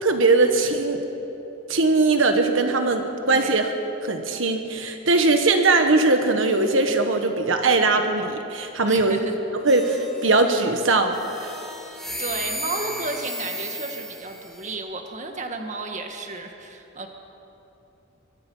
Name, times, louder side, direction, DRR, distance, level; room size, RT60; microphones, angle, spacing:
voice 1, 0.0-1.0 1.7-3.7 4.0-9.2 9.5-11.5, right 3 dB, 75° right, 5 dB, 1.5 m, -20 dB
voice 2, 8.9-9.4 12.2-17.1, right 3 dB, 40° right, 4 dB, 1.8 m, -32 dB
sound 1, 9.7-10.6 11.1-14.7, equal, ahead, 2.2 m, -35 dB
24.0 x 22.5 x 5.6 m, 3.0 s
head